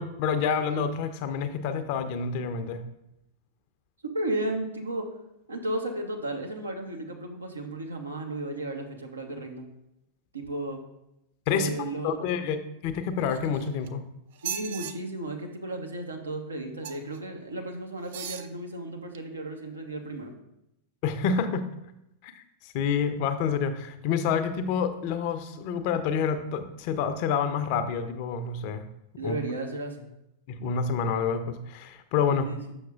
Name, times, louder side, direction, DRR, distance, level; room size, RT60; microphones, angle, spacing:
voice 1, 0.0-2.8 11.5-11.7 12.0-12.6 12.8-14.0 21.0-21.6 22.2-28.9 29.2-29.3 30.5-32.5, left 6 dB, 45° left, 9 dB, 0.5 m, -28 dB
voice 2, 4.0-5.1 5.5-9.6 10.3-10.8 11.5-12.5 14.4-20.3 29.2-30.1 32.4-32.7, right 1 dB, 80° right, 3 dB, 0.8 m, -34 dB
sound 1, 13.2-13.9 14.3-14.9 16.8-17.2 18.0-18.5 19.1-19.2, right 9 dB, 55° right, 0.3 m, -37 dB
7.0 x 5.9 x 2.4 m, 0.86 s
figure-of-eight pair, 90°, 0 cm